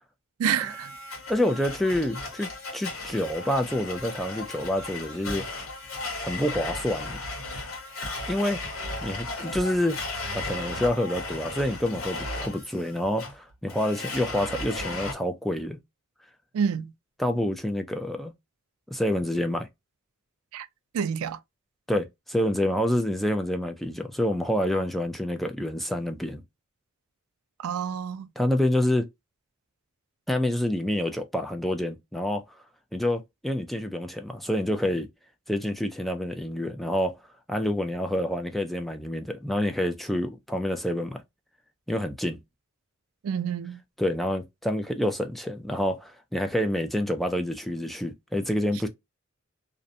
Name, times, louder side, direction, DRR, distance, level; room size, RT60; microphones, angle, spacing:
voice 1, 0.4-0.9 16.5-16.9 20.5-20.7 20.9-21.4 27.6-28.3 43.2-43.8, right 7 dB, 85° right, 0.3 m, -28 dB
Domestic sounds home sounds, 0.5-15.1, left 2 dB, 75° left, 1.0 m, -36 dB
voice 2, 1.3-5.5 6.2-7.2 8.3-8.6 9.0-10.0 10.3-15.8 17.2-18.3 18.9-19.7 21.9-26.4 28.4-29.1 30.3-32.4 32.9-35.1 35.5-37.2 37.5-41.2 41.9-42.4 44.0-48.9, left 1 dB, ahead, 0.3 m, -27 dB
2.5 x 2.1 x 2.5 m
head